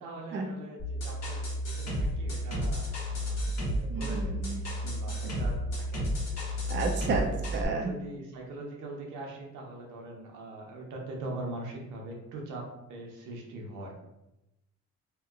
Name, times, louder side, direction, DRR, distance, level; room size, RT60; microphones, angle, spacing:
voice 1, 0.0-5.6 5.9-6.0 7.2-7.4 7.8-13.9, right 2 dB, 85° right, 0 dB, 0.8 m, -42 dB
sound 1, 0.8-7.6, equal, 55° left, 1.2 m, -32 dB
voice 2, 3.9-4.6 6.7-7.9, right 3 dB, 40° right, 3 dB, 0.5 m, -31 dB
2.9 x 2.8 x 2.4 m, 0.90 s
cardioid pair, 90°, 30 cm